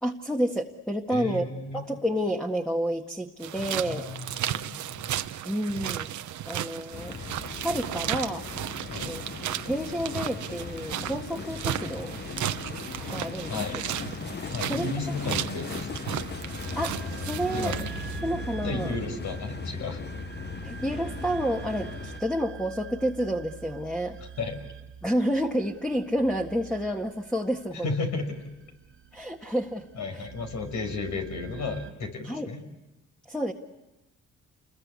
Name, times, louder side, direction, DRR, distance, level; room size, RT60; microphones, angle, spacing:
voice 1, 0.0-1.4 1.7-4.1 5.4-6.1 6.5-7.2 7.6-8.4 9.0-9.2 9.7-12.2 13.1-13.8 14.7-14.9 16.8-17.7 18.2-18.9 20.6-24.2 25.0-27.9 29.1-29.9 30.1-30.3 32.2-32.5 33.3-33.5, equal, ahead, 2 dB, 1.7 m, -29 dB
voice 2, 1.1-1.8 3.9-5.2 8.9-9.2 13.5-13.8 14.5-15.9 17.5-18.2 18.6-20.1 24.4-24.5 27.8-28.6 30.0-32.6, left 3 dB, 70° left, 5 dB, 5.5 m, -33 dB
sound 1, 3.4-18.2, right 12 dB, 70° right, 1.0 m, -35 dB
sound 2, 6.9-22.2, left 6 dB, 35° left, 0.8 m, -38 dB
sound 3, 14.1-31.9, right 8 dB, 40° right, 1.5 m, -44 dB
29.0 x 21.5 x 8.4 m, 1.0 s
cardioid pair, 90°, 30 cm